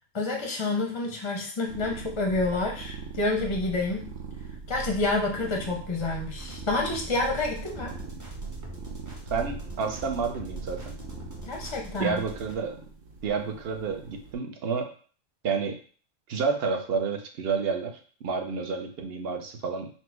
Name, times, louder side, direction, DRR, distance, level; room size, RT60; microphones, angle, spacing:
voice 1, 0.1-4.1 4.7-8.0 11.4-12.2, left 2 dB, 30° left, 1 dB, 0.5 m, -28 dB
sound 1, 1.7-14.3, right 4 dB, 75° right, 1.2 m, -41 dB
sound 2, 6.3-12.5, equal, 20° right, 0.6 m, -43 dB
voice 2, 9.3-11.0 12.0-12.8 13.2-14.9 15.4-15.8 16.3-19.9, right 5 dB, 55° right, 4 dB, 0.8 m, -30 dB
4.3 x 2.1 x 4.5 m, 0.42 s
omnidirectional pair, 1.4 m